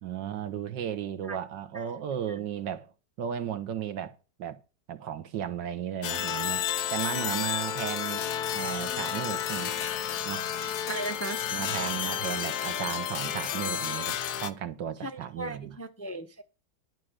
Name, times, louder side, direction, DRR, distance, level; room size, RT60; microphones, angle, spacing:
voice 1, 0.0-2.9 3.2-4.6 4.9-6.6 6.9-8.3 8.5-9.7 10.2-10.5 11.5-15.8, right 9 dB, 80° right, 1.8 m, -35 dB
sound 1, 6.0-14.5, left 9 dB, 65° left, 1.4 m, -31 dB
voice 2, 10.9-11.4 15.0-16.4, right 2 dB, 10° left, 0.8 m, -36 dB
11.5 x 6.4 x 6.4 m
omnidirectional pair, 2.0 m